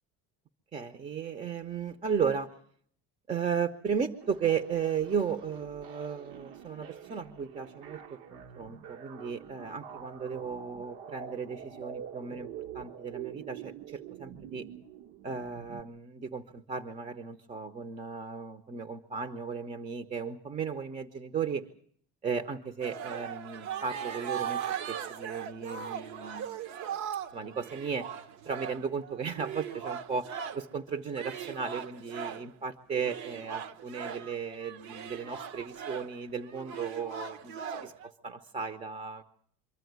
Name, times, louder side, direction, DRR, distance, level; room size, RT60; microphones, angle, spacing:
voice 1, 0.7-2.6 3.3-12.5 12.7-14.7 15.2-21.6 22.2-26.5 27.3-28.1 28.4-39.2, right 6 dB, 20° right, 10 dB, 0.8 m, -35 dB
sound 1, 4.2-15.8, right 9 dB, 75° right, 1.3 m, -46 dB
sound 2, 22.8-30.7 31.1-32.5 33.0-38.1, right 8 dB, 55° right, 1.1 m, -39 dB
24.5 x 14.0 x 9.3 m, 0.62 s
cardioid pair, 155°, 33 cm